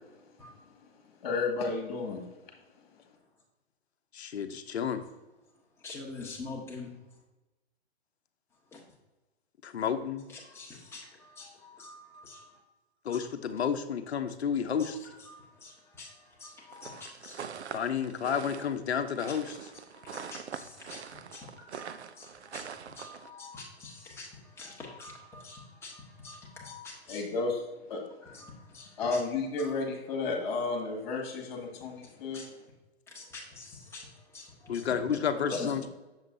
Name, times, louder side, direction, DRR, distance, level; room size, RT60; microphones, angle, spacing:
voice 1, 1.2-2.2 27.1-27.6 27.9-28.0 29.0-32.5, left 3 dB, 45° left, 2 dB, 1.9 m, -32 dB
voice 2, 4.1-5.0 9.6-10.2 13.0-15.0 17.7-19.7 34.7-35.9, left 7 dB, 70° left, 9 dB, 0.9 m, -31 dB
voice 3, 5.8-6.9 8.7-8.8 10.3-12.6 14.8-17.5 19.7-27.2 28.2-29.2 29.6-29.7 32.3-32.5 33.1-34.9 35.5-35.7, left 3 dB, 10° left, -4 dB, 1.5 m, -45 dB
sound 1, 16.7-23.3, right 7 dB, 75° right, 0.6 m, -44 dB
7.4 x 7.2 x 2.7 m, 1.1 s
hypercardioid pair, 135°, 33 cm